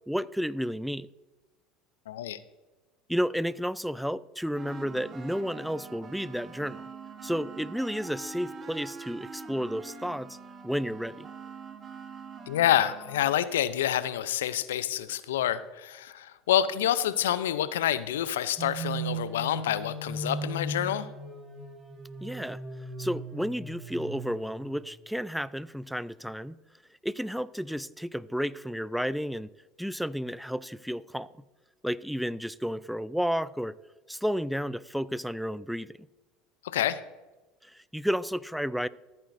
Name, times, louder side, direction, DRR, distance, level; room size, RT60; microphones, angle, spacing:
voice 1, 0.1-1.1 3.1-6.8 7.2-10.4 10.6-11.3 22.2-22.6 23.0-26.6 27.0-29.5 29.8-31.3 31.8-33.7 34.1-36.1 37.6-38.9, equal, ahead, 0.4 m, -32 dB
voice 2, 2.1-2.4 12.5-21.1 36.7-37.0, left 11 dB, 80° left, 0.6 m, -27 dB
sound 1, 4.5-13.4, right 5 dB, 35° right, 1.4 m, -44 dB
sound 2, 18.6-24.8, right 2 dB, 15° right, 2.5 m, -37 dB
14.5 x 8.8 x 2.6 m
hypercardioid pair, 75°, 0 cm